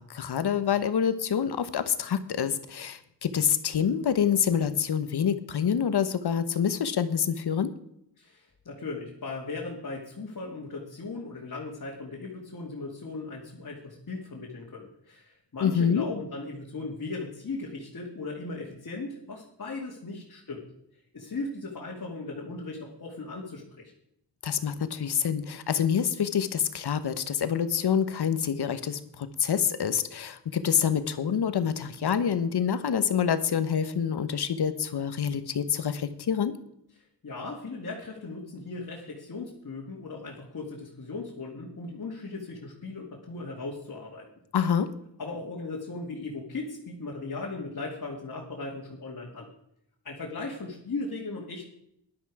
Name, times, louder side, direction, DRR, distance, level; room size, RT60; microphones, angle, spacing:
voice 1, 0.0-7.7 15.6-16.0 24.4-36.5 44.5-44.9, left 8 dB, 70° left, 12 dB, 1.1 m, -27 dB
voice 2, 8.2-20.6 21.1-23.9 37.2-44.3 45.2-49.5 50.0-51.6, left 3 dB, 50° left, -3 dB, 2.5 m, -37 dB
13.5 x 11.0 x 4.9 m, 0.76 s
cardioid pair, 70°, 41 cm